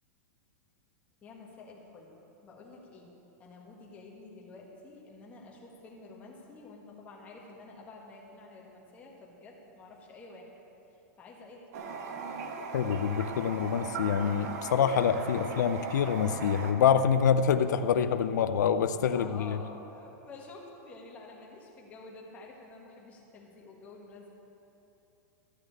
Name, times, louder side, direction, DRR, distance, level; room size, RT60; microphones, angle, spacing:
voice 1, 1.2-10.5 11.2-12.3 19.0-24.3, left 3 dB, 15° left, -2 dB, 1.6 m, -50 dB
Toilet flush, 11.7-16.7, right 4 dB, 60° right, 1.3 m, -38 dB
voice 2, 12.7-19.6, left 7 dB, 90° left, 10 dB, 0.5 m, -26 dB
13.0 x 6.5 x 8.5 m, 2.9 s
supercardioid pair, 170°, 9 cm